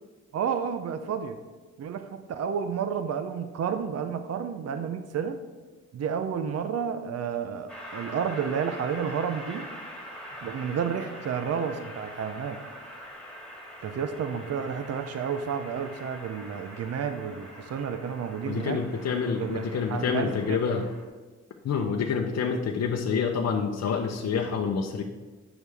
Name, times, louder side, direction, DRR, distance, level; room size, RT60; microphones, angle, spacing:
voice 1, 0.3-1.4 1.8-5.4 5.9-9.7 10.4-12.6 13.8-18.8 19.4-20.6, right 7 dB, 60° right, 9 dB, 0.6 m, -31 dB
Train, 7.7-21.1, equal, 5° left, 2.1 m, -44 dB
voice 2, 18.5-20.8 21.6-25.0, left 5 dB, 60° left, 2 dB, 0.7 m, -27 dB
8.9 x 6.4 x 3.4 m, 1.3 s
cardioid pair, 80°, 29 cm